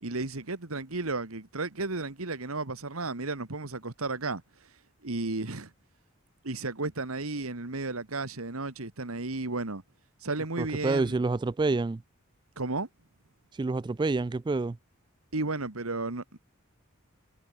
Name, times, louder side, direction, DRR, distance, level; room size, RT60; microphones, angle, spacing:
voice 1, 0.0-4.4 5.0-5.7 6.4-9.8 10.2-11.2 12.6-12.9 15.3-16.4, right 3 dB, 85° right, 1.9 m, -33 dB
voice 2, 10.6-12.0 13.6-14.8, right 3 dB, 20° right, 0.3 m, -28 dB
head